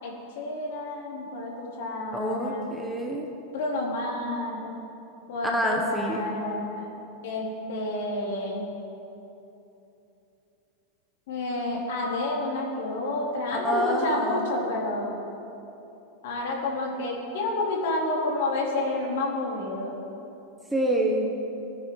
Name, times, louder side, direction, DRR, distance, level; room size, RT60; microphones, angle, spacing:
voice 1, 0.0-2.7 3.5-4.7 5.3-6.9 7.2-8.6 11.3-15.2 16.2-19.9, left 2 dB, 65° left, -2 dB, 3.7 m, -30 dB
voice 2, 2.1-3.3 5.5-6.3 13.5-14.5 20.7-21.3, right 1 dB, 5° right, -1 dB, 1.2 m, -27 dB
20.5 x 9.7 x 4.8 m, 2.9 s
supercardioid pair, 165°, 0 cm